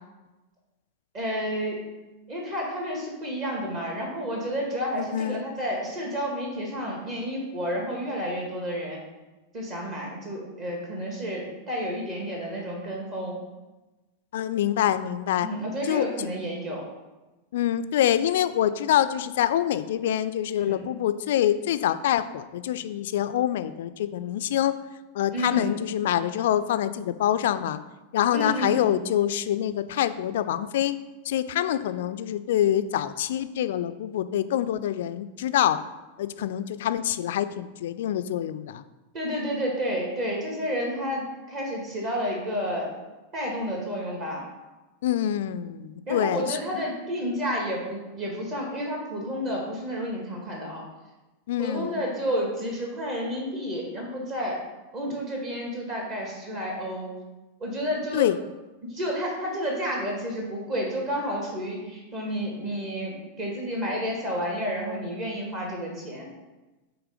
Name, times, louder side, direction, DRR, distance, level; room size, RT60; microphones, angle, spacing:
voice 1, 1.1-1.8 2.3-9.0 9.5-13.4 15.4-16.9 20.6-20.8 25.3-25.7 28.3-28.8 39.1-42.9 43.3-44.4 46.1-50.8 51.6-54.6 54.9-57.1 57.6-58.3 58.9-66.3, equal, 40° right, -1 dB, 1.6 m, -30 dB
voice 2, 5.0-5.5 14.3-15.5 15.9-16.3 17.5-24.7 25.1-27.8 28.1-31.0 31.3-35.8 36.2-38.8 45.0-46.6 51.5-52.0 58.1-58.4, left 11 dB, 55° left, 12 dB, 0.3 m, -25 dB
8.0 x 3.1 x 5.0 m, 1.1 s
figure-of-eight pair, 90°, 0 cm